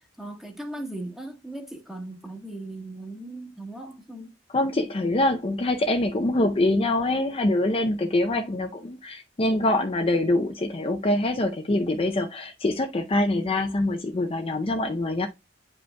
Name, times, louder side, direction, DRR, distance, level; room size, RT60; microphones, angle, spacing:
voice 1, 0.2-4.3, right 1 dB, ahead, 1.2 m, -38 dB
voice 2, 4.5-15.3, left 1 dB, 30° left, 0.5 m, -24 dB
9.5 x 5.1 x 2.2 m
head